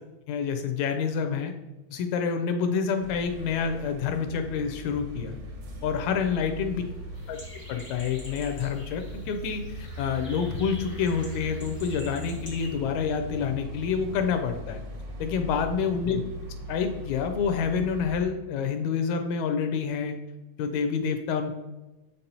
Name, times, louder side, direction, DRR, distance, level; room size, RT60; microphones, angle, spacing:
voice 1, 0.3-1.5 1.9-5.4 5.8-6.8 7.3-7.4 7.7-14.8 15.2-16.2 16.7-20.2 20.6-21.5, left 6 dB, 80° left, 6 dB, 1.8 m, -28 dB
sound 1, 3.0-18.2, equal, 90° right, 2.5 m, -40 dB
sound 2, 7.1-12.8, equal, 20° left, 0.9 m, -47 dB
7.1 x 5.4 x 2.8 m, 1.1 s
omnidirectional pair, 3.4 m